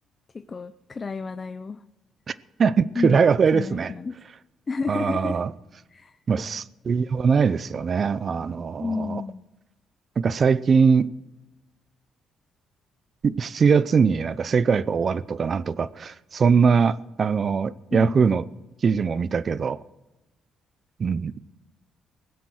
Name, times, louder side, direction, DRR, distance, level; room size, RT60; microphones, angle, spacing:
voice 1, 0.3-1.8 2.9-3.2 3.5-4.2 4.7-5.4 5.9-6.2 8.8-9.5 17.9-18.3, left 4 dB, 35° left, 0.6 m, -31 dB
voice 2, 2.3-3.9 4.9-5.5 6.3-9.2 10.2-11.1 13.2-18.4 18.8-19.8 21.0-21.3, right 5 dB, 45° right, 0.6 m, -21 dB
19.5 x 8.2 x 6.4 m
cardioid pair, 90°, 0 cm